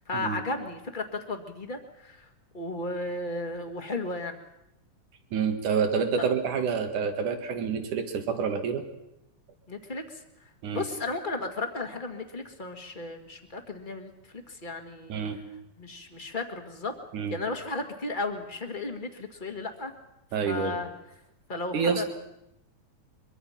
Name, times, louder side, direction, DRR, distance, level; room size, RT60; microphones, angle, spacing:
voice 1, 0.1-2.2 2.5-4.4 9.7-10.0 10.7-14.1 14.5-15.2 15.8-16.9 17.3-19.9 20.5-20.9 21.5-22.0, left 2 dB, 20° left, 5 dB, 1.4 m, -34 dB
voice 2, 5.3-8.8 10.6-10.9 15.1-15.4 17.1-17.4 20.3-20.8 21.7-22.1, right 6 dB, 85° right, 6 dB, 3.4 m, -28 dB
23.5 x 23.5 x 5.8 m, 0.85 s
omnidirectional pair, 3.5 m